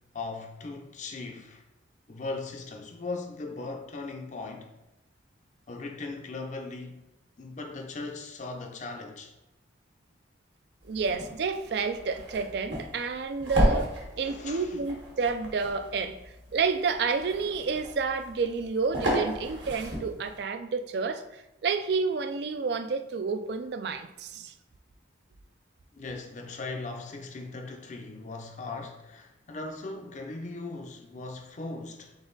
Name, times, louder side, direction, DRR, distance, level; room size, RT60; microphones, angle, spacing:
voice 1, 0.1-1.6 2.1-4.7 5.7-7.0 7.4-9.3 14.1-14.8 25.9-32.1, left 3 dB, 40° left, 0.5 m, -38 dB
voice 2, 10.8-16.2 16.5-24.5, right 5 dB, 55° right, 0.3 m, -30 dB
sound 1, 10.8-20.4, equal, 75° right, 1.5 m, -33 dB
4.0 x 3.4 x 3.8 m
head